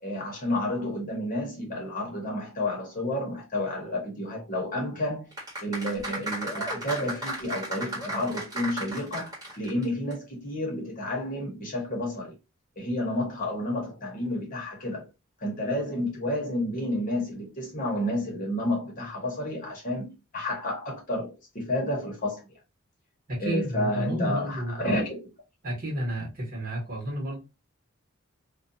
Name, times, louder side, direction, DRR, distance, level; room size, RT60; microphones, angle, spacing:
voice 1, 0.0-5.3 5.6-12.3 12.8-15.1 15.4-22.4 23.4-25.2, left 1 dB, 40° left, 1.0 m, -30 dB
sound 1, 5.3-9.8 10.1-10.2, right 1 dB, 15° right, 1.3 m, -34 dB
voice 2, 23.3-25.0 25.6-27.4, right 1 dB, 45° right, 1.2 m, -31 dB
2.5 x 2.3 x 2.6 m
head